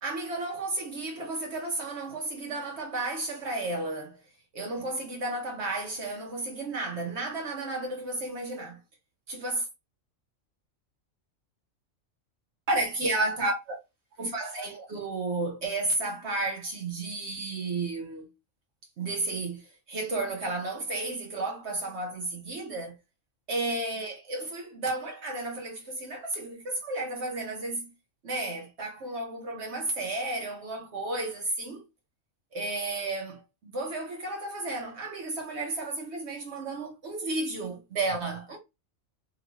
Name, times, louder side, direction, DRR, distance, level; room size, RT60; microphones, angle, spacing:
voice 1, 0.0-4.2 4.5-8.8 9.3-9.7 12.7-13.8 14.2-18.3 19.0-23.0 23.5-27.9 28.2-31.8 32.5-38.6, right 2 dB, 60° right, 1.0 m, -32 dB
2.9 x 2.4 x 3.0 m
omnidirectional pair, 1.4 m